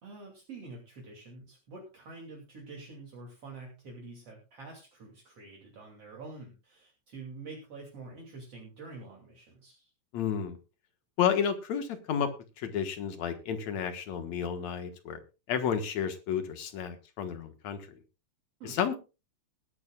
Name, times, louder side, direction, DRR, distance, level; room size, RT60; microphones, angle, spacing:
voice 1, 0.0-9.9 18.6-18.8, right 3 dB, 50° right, -1 dB, 3.7 m, -47 dB
voice 2, 10.1-10.6 11.2-12.3 12.6-15.2 15.5-17.9 18.6-19.0, left 8 dB, 70° left, 8 dB, 2.7 m, -31 dB
20.0 x 11.5 x 2.4 m, 0.30 s
omnidirectional pair, 3.4 m